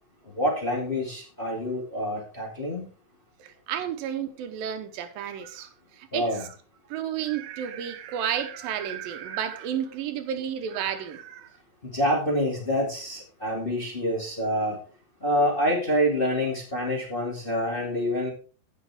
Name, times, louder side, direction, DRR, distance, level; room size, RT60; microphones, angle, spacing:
voice 1, 0.3-2.9 6.1-6.4 11.8-14.8 15.2-18.3, equal, 20° left, 1.9 m, -27 dB
voice 2, 3.4-5.7 6.0-6.5 6.9-11.5, right 9 dB, 85° right, 2.7 m, -32 dB
16.5 x 5.7 x 3.6 m
omnidirectional pair, 4.0 m